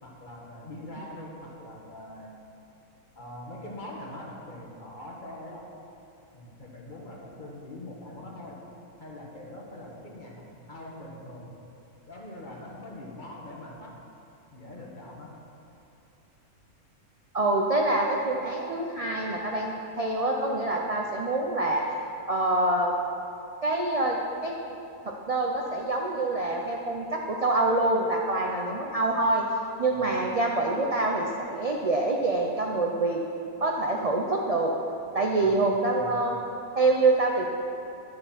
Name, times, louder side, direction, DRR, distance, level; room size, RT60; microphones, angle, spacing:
voice 1, 0.0-2.5 3.1-5.6 6.3-8.6 9.0-11.5 12.1-14.0 14.5-15.3 30.0-30.1 35.4-36.2, left 1 dB, 35° left, -2 dB, 1.5 m, -43 dB
voice 2, 17.3-21.8 22.3-22.9 23.6-24.5 25.0-29.4 29.8-33.2 33.6-34.7 35.1-36.4 36.8-37.4, right 2 dB, 55° right, -1 dB, 0.4 m, -26 dB
10.5 x 6.6 x 5.9 m, 2.7 s
omnidirectional pair, 1.6 m